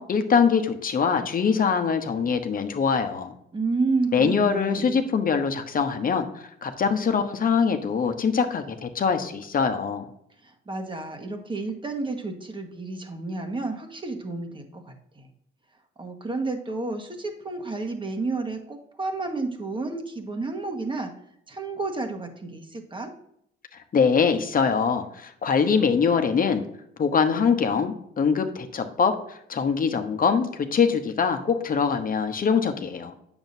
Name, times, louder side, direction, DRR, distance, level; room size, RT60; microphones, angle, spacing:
voice 1, 0.0-3.3 4.1-6.2 6.6-10.0 23.9-26.6 27.0-33.1, left 6 dB, 45° left, 7 dB, 1.1 m, -23 dB
voice 2, 3.5-5.0 10.4-15.3 16.0-21.1 21.5-23.1, right 3 dB, 25° right, 3 dB, 1.5 m, -31 dB
8.8 x 7.1 x 2.8 m, 0.71 s
cardioid pair, 90°, 20 cm